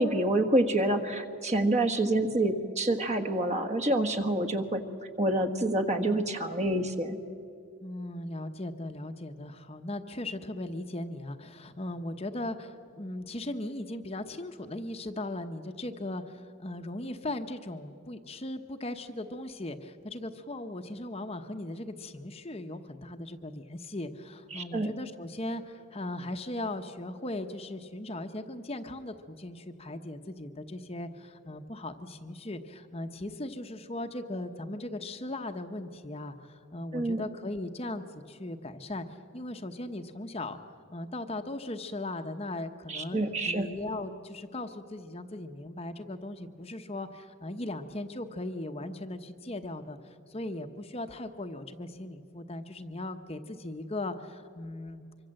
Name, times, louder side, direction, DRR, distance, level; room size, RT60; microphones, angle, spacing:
voice 1, 0.0-4.8 5.2-7.2 24.5-24.9 36.9-37.2 42.9-43.7, right 1 dB, 30° right, 7 dB, 1.6 m, -27 dB
voice 2, 7.8-39.0 39.3-40.6 40.9-55.0, left 1 dB, 30° left, 7 dB, 0.9 m, -38 dB
25.0 x 24.5 x 7.7 m, 2.5 s
head